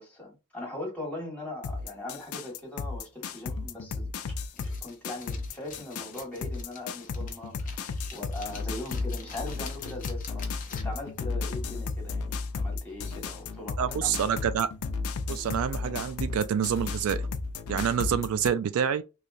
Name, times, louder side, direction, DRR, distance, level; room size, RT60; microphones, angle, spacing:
voice 1, 0.0-14.3, left 2 dB, 5° left, 1.6 m, -40 dB
sound 1, 1.6-18.5, left 4 dB, 80° left, 0.4 m, -34 dB
sound 2, 4.6-11.1, left 5 dB, 40° left, 0.7 m, -47 dB
voice 2, 13.8-14.7 15.3-17.2 17.7-19.0, right 8 dB, 75° right, 0.3 m, -27 dB
3.1 x 2.8 x 2.5 m
head